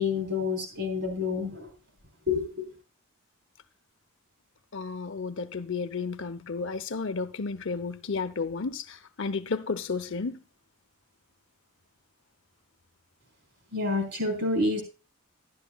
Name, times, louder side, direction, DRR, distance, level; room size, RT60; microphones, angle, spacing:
voice 1, 0.0-1.7 2.3-2.7 13.7-14.8, left 3 dB, 55° right, 3.8 m, -28 dB
voice 2, 4.7-10.4, left 4 dB, 55° left, 0.7 m, -32 dB
12.0 x 11.5 x 2.3 m
head